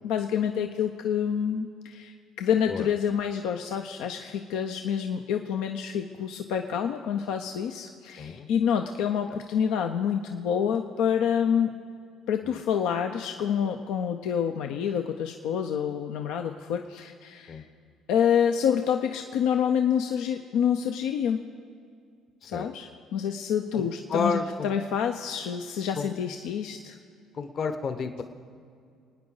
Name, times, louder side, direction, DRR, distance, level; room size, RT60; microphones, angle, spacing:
voice 1, 0.0-11.7 12.3-17.6 18.1-21.4 22.5-27.0, left 8 dB, 75° left, 5 dB, 0.6 m, -27 dB
voice 2, 8.2-8.5 12.4-12.6 17.5-17.6 22.4-22.7 23.7-24.7 26.0-26.1 27.3-28.2, left 5 dB, 50° left, 8 dB, 1.1 m, -31 dB
27.5 x 9.5 x 3.9 m, 2.3 s
hypercardioid pair, 65°, 0 cm